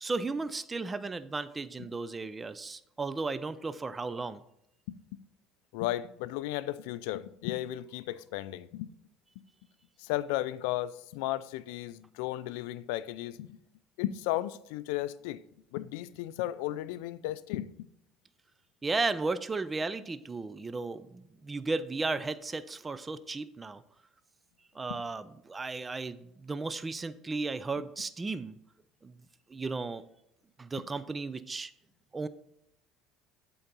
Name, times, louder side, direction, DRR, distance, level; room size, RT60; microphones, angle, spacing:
voice 1, 0.0-4.4 18.8-23.8 24.7-28.5 29.0-29.2 29.5-30.0 30.6-31.7 32.1-32.3, right 3 dB, 20° right, 0.4 m, -35 dB
voice 2, 5.7-8.9 10.0-13.6 14.0-15.4 15.7-17.9, left 14 dB, 85° left, 0.3 m, -34 dB
8.0 x 3.9 x 5.5 m
supercardioid pair, 105°, 0 cm